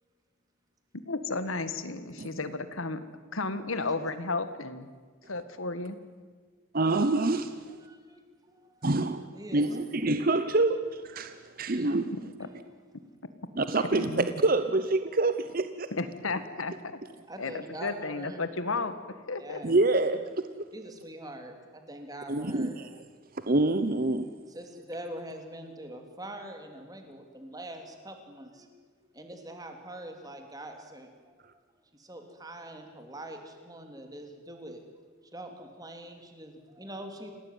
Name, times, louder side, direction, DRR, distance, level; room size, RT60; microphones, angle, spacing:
voice 1, 1.1-3.0 3.3-4.9 5.3-6.0 13.9-14.3 15.9-17.0 17.4-19.0 19.3-19.6, left 3 dB, 75° left, 12 dB, 1.7 m, -33 dB
voice 2, 6.7-7.6 8.8-9.2 9.5-12.1 13.6-14.1 14.4-15.9 19.6-20.3 22.3-22.9 23.4-24.3, right 2 dB, 45° right, 10 dB, 0.9 m, -26 dB
voice 3, 7.7-8.9 9.3-9.7 12.4-12.6 15.0-15.3 17.3-18.4 19.4-19.8 20.7-22.8 23.4-23.5 24.2-28.7 29.1-31.4 31.9-34.8 35.3-37.3, right 1 dB, 20° right, 5 dB, 3.1 m, -44 dB
28.0 x 18.5 x 9.5 m, 1.5 s
head